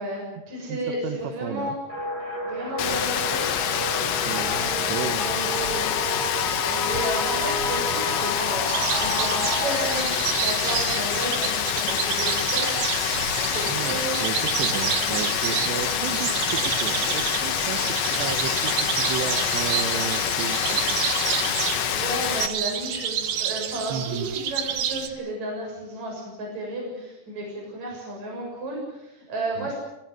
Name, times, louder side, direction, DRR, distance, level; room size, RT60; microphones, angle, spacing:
voice 1, 0.0-1.8 2.5-3.5 3.8-4.1 4.5-5.9 6.9-9.3 9.6-13.2 13.4-14.3 15.9-16.1 21.9-29.7, right 1 dB, 40° right, 0 dB, 8.2 m, -33 dB
voice 2, 0.7-1.8 4.2-5.3 6.7-6.9 13.6-21.1 23.9-24.3 29.6-29.7, right 9 dB, 80° right, 6 dB, 3.4 m, -33 dB
sound 1, 1.9-9.9, equal, 20° right, 5.3 m, -30 dB
Rain, 2.8-22.5, left 10 dB, 90° left, 3.7 m, -26 dB
sound 2, 8.7-25.1, right 9 dB, 60° right, 2.5 m, -29 dB
25.5 x 18.5 x 7.7 m, 0.92 s
omnidirectional pair, 5.0 m